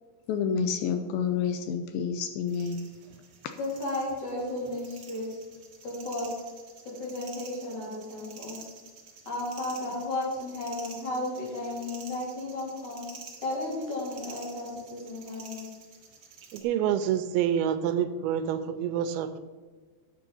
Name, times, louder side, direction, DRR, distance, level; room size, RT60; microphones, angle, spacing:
voice 1, 0.3-2.9, left 6 dB, 80° left, 7 dB, 2.4 m, -29 dB
sound 1, 2.5-16.6, right 5 dB, 50° right, 1.8 m, -49 dB
voice 2, 3.6-5.4 5.8-6.3 6.8-8.6 9.3-13.0 13.4-15.7, left 2 dB, 50° left, -4 dB, 4.9 m, -34 dB
voice 3, 16.5-19.4, right 9 dB, 85° right, 11 dB, 2.6 m, -27 dB
10.5 x 7.7 x 5.5 m, 1.4 s
omnidirectional pair, 4.4 m